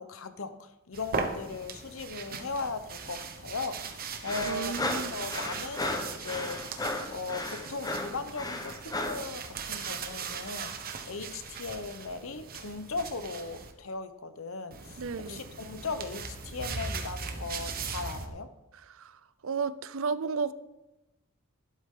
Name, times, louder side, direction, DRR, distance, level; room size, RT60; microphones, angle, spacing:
voice 1, 0.0-18.5, left 3 dB, 70° left, 11 dB, 0.9 m, -38 dB
sound 1, 0.9-13.7 14.7-18.3, right 5 dB, 45° right, 1.2 m, -39 dB
sound 2, 4.2-9.3, left 2 dB, 20° left, 1.1 m, -34 dB
voice 2, 4.5-5.1 15.0-15.4 18.9-20.5, right 5 dB, 70° right, 15 dB, 0.6 m, -33 dB
12.0 x 12.0 x 3.8 m, 0.99 s
head